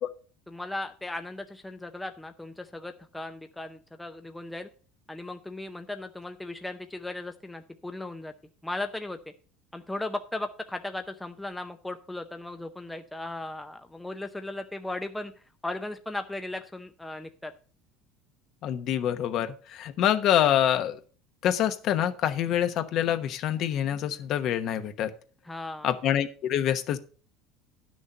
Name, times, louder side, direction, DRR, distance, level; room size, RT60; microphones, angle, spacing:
voice 1, 0.5-4.7 5.1-8.3 8.6-9.2 9.7-15.3 15.6-17.5 25.4-25.9, left 2 dB, 5° left, 6 dB, 0.6 m, -37 dB
voice 2, 18.6-21.0 21.4-25.1 25.8-27.0, left 10 dB, 45° left, 10 dB, 1.0 m, -26 dB
10.5 x 6.4 x 5.4 m, 0.40 s
cardioid pair, 150°, 0 cm